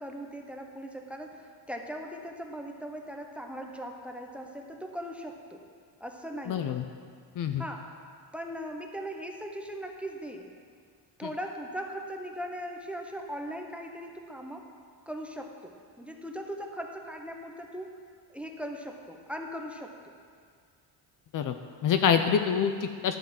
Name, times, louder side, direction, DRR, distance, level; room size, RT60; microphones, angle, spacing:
voice 1, 0.0-5.7 6.0-6.7 7.6-7.8 8.3-10.5 11.2-14.7 15.1-18.0 18.3-20.0, equal, 5° right, 2 dB, 0.8 m, -39 dB
voice 2, 6.5-6.8 7.4-7.6 21.3-23.2, left 7 dB, 50° left, 7 dB, 0.5 m, -26 dB
11.5 x 3.9 x 7.3 m, 2.1 s
cardioid pair, 105°, 42 cm